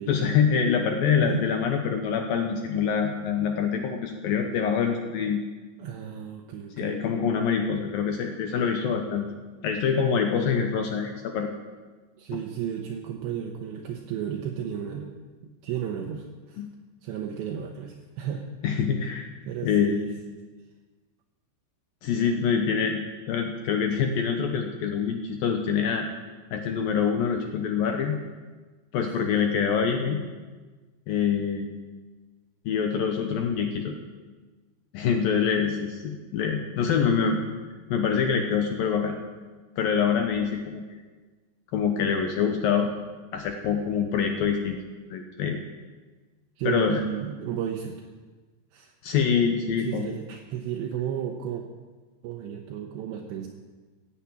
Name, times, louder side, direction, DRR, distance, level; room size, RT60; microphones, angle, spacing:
voice 1, 0.1-5.4 6.8-9.3 9.6-11.5 16.6-16.7 18.6-19.3 19.6-20.0 22.0-26.1 26.5-28.2 28.9-30.2 31.1-31.7 32.7-34.0 34.9-37.5 37.9-39.2 39.8-40.8 41.7-42.9 43.3-44.8 45.1-45.6 46.7-47.0 49.0-50.1, left 6 dB, 75° left, 4 dB, 2.2 m, -25 dB
voice 2, 5.8-7.0 12.2-15.1 15.4-16.6 17.0-18.5 19.5-20.1 46.6-48.0 48.7-48.9 49.9-51.6 52.2-53.5, right 9 dB, 75° right, 2 dB, 3.1 m, -33 dB
15.5 x 10.0 x 8.8 m, 1.3 s
omnidirectional pair, 5.4 m